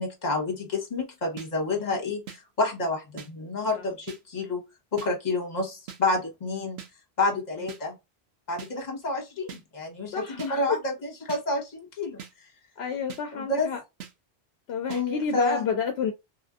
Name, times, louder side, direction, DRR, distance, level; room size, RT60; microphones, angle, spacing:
voice 1, 0.0-4.6 4.9-6.8 7.2-8.0 8.5-12.2 13.3-13.7 14.9-15.6, left 2 dB, 45° left, 1.2 m, -29 dB
sound 1, 1.4-1.5 2.3-2.4 3.2-3.3 4.1-4.2 5.0-5.1 5.9-6.0 6.8-6.9 7.7-7.8 8.6-8.7 9.5-9.6 10.4-10.5 11.3-11.4 12.2-12.3 13.1-13.2 14.0-14.1 14.9-15.0, right 8 dB, 85° right, 1.0 m, -41 dB
voice 2, 10.1-10.8 12.8-13.8 14.7-16.1, left 6 dB, 80° left, 0.8 m, -30 dB
3.3 x 2.5 x 2.4 m
omnidirectional pair, 1.0 m